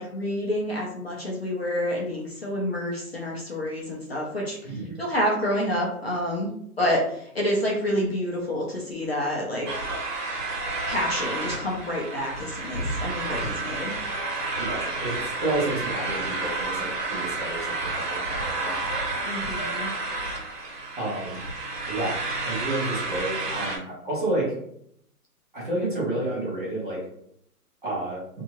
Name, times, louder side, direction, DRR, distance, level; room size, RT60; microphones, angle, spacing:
voice 1, 0.0-6.5 6.8-7.0 7.3-9.7 10.9-13.9 19.2-19.9, equal, 40° left, -3 dB, 0.6 m, -28 dB
voice 2, 4.6-5.0 14.6-15.1 15.4-18.8 21.0-21.4 21.9-24.5 25.5-27.0 27.8-28.2, right 2 dB, 30° right, -6 dB, 1.0 m, -30 dB
sound 1, 9.7-23.8, right 2 dB, 85° right, 1.3 m, -30 dB
2.7 x 2.4 x 2.9 m, 0.70 s
hypercardioid pair, 175°, 47 cm